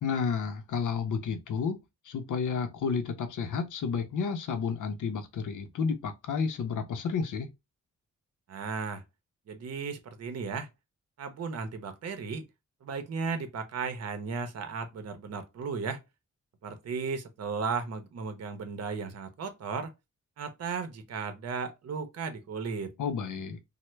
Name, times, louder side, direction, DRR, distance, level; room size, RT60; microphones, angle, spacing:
voice 1, 0.0-7.5 23.0-23.6, left 5 dB, 85° left, 0.6 m, -31 dB
voice 2, 8.5-9.0 9.5-10.7 11.2-12.4 12.8-16.0 16.6-19.9 20.4-22.9, right 5 dB, 55° right, 0.7 m, -35 dB
3.2 x 2.1 x 3.0 m
wide cardioid pair, 130°, 30 cm